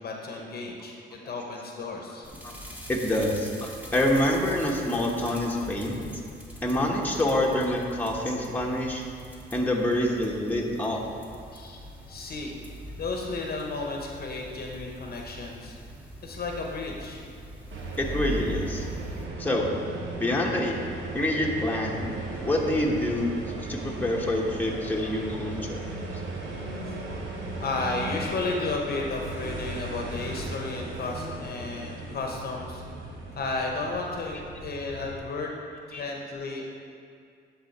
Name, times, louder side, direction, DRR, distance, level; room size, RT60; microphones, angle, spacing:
voice 1, 0.0-2.3 11.5-11.8 12.1-12.5 13.0-15.8 16.2-17.2 26.5-35.5 35.9-36.7, left 3 dB, 50° left, 0 dB, 1.0 m, -33 dB
sound 1, 2.2-19.2, equal, 5° right, 1.3 m, -42 dB
voice 2, 2.9-6.0 6.6-9.0 9.5-11.0 18.0-18.8 19.4-19.7 20.2-20.7 21.1-23.3 23.7-25.8 35.9-36.0, left 1 dB, 10° left, -2 dB, 1.1 m, -26 dB
sound 2, 17.7-35.2, right 2 dB, 75° right, 1.2 m, -37 dB
11.5 x 4.2 x 4.2 m, 2.3 s
cardioid pair, 90°, 20 cm